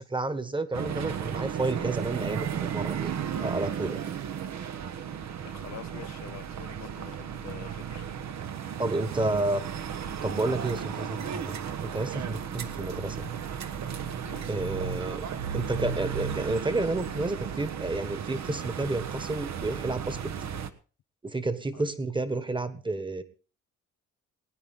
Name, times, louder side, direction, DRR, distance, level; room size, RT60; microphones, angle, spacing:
voice 1, 0.0-2.5 2.7-3.1 3.4-4.0 8.8-9.6 10.2-13.3 14.5-15.3 15.5-20.3 21.2-23.2, right 2 dB, 15° right, 12 dB, 1.4 m, -30 dB
sound 1, 0.7-20.7, right 8 dB, 65° right, 1.2 m, -34 dB
voice 2, 5.4-8.1 9.2-9.3 14.2-14.5 21.7-21.8, left 12 dB, 65° left, 16 dB, 0.8 m, -46 dB
20.5 x 9.7 x 3.7 m, 0.37 s
cardioid pair, 90°, 30 cm